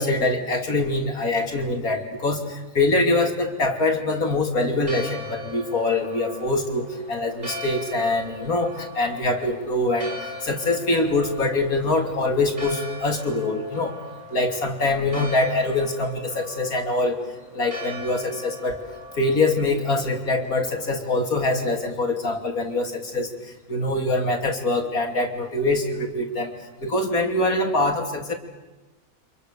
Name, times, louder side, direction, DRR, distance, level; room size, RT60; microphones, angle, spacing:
voice 1, 0.0-14.0 14.3-17.2 17.5-18.8 19.2-26.5 26.8-28.3, left 2 dB, 90° left, 4 dB, 3.5 m, -24 dB
Church bell, 4.7-21.4, left 1 dB, 30° right, 7.3 m, -40 dB
30.0 x 26.5 x 6.8 m, 1.2 s
omnidirectional pair, 1.5 m